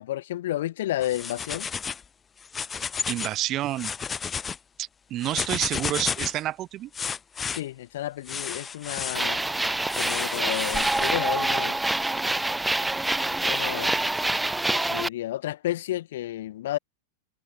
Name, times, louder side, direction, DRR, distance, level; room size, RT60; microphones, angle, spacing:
voice 1, 0.0-1.7 7.5-9.4 9.9-11.9 13.4-14.0 14.7-16.8, left 14 dB, 60° left, 2.1 m, -31 dB
sound 1, 1.0-2.0 2.4-3.4 3.7-4.6 5.2-6.4 6.9-7.6 8.3-9.2 9.9-11.1, left 6 dB, 20° left, 4.1 m, -32 dB
voice 2, 2.8-3.9 4.8-6.9, right 14 dB, 35° right, 2.2 m, -29 dB
sound 2, 9.1-15.1, right 2 dB, 5° right, 1.2 m, -26 dB
figure-of-eight pair, 95°, 0 cm